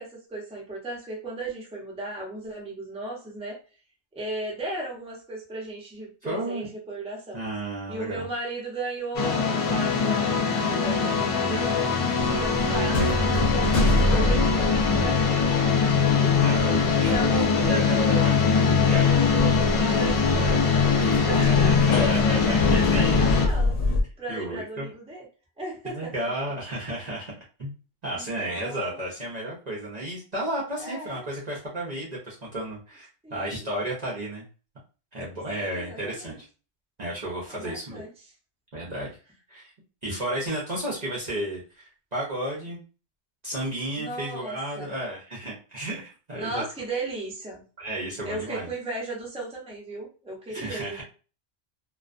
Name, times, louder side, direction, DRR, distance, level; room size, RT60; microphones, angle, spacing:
voice 1, 0.0-3.6 4.1-7.4 7.9-11.9 12.4-16.3 17.0-18.3 18.9-23.8 24.2-25.3 25.6-26.3 28.1-29.1 30.8-31.3 33.2-33.7 35.5-36.4 37.5-38.1 44.0-44.9 46.3-47.6 48.2-51.0, right 2 dB, 5° right, -2 dB, 0.6 m, -36 dB
voice 2, 6.2-6.7 7.3-8.3 16.4-17.3 17.7-18.3 18.8-19.1 21.3-23.3 24.3-24.9 25.8-27.3 27.6-27.7 28.0-34.5 35.1-36.5 37.0-38.0 38.7-39.1 39.5-39.7 40.0-42.8 43.4-46.6 47.8-48.7 50.5-51.0, right 1 dB, 45° right, -5 dB, 0.7 m, -33 dB
sound 1, 9.1-23.5, left 5 dB, 50° left, 0.4 m, -22 dB
sound 2, 12.2-16.0 16.3-17.4 17.6-17.7 18.3-24.0, left 1 dB, 80° left, 0.9 m, -26 dB
2.3 x 2.2 x 2.4 m, 0.36 s
omnidirectional pair, 1.1 m